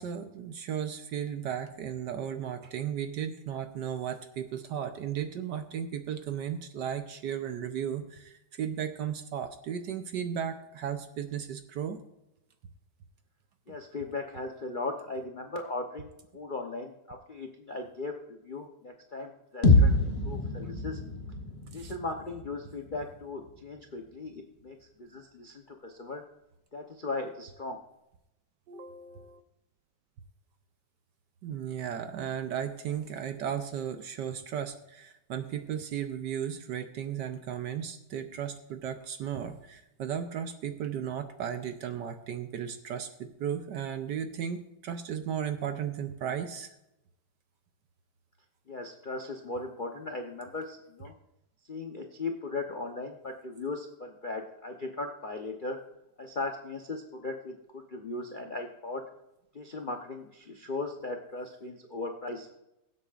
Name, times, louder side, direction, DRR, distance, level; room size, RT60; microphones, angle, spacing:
voice 1, 0.0-12.0 13.7-13.8 21.7-21.9 28.7-29.4 31.4-46.8, right 9 dB, 65° right, 8 dB, 1.2 m, -35 dB
voice 2, 13.7-18.1 18.4-21.0 21.7-26.2 26.7-27.8 48.7-51.1 51.7-55.8 56.2-59.0 59.5-62.5, left 3 dB, 75° left, 3 dB, 0.4 m, -38 dB
sound 1, 19.6-23.6, left 2 dB, 30° left, 1.1 m, -26 dB
22.0 x 8.1 x 2.5 m, 0.89 s
omnidirectional pair, 2.4 m